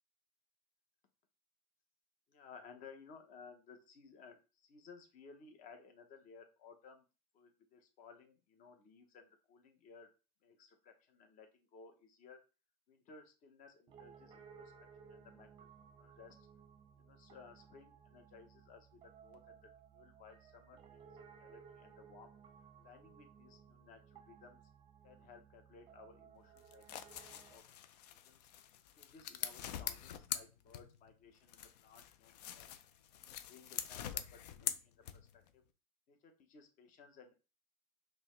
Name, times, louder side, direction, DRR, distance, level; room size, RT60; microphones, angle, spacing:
voice 1, 2.3-7.1 7.3-10.1 10.4-12.4 12.9-14.7 15.0-15.7 16.0-16.4 17.0-21.1 21.4-22.3 22.8-24.6 25.0-27.8 28.1-28.4 29.0-32.7 33.2-35.6 36.1-37.3, left 5 dB, 40° left, 6 dB, 0.8 m, -59 dB
Piano, 13.9-27.6, right 7 dB, 25° right, 0.5 m, -60 dB
sound 1, 26.6-31.1 31.5-35.5, left 10 dB, 85° left, 0.4 m, -44 dB
5.3 x 2.1 x 3.1 m, 0.32 s
supercardioid pair, 125°, 20 cm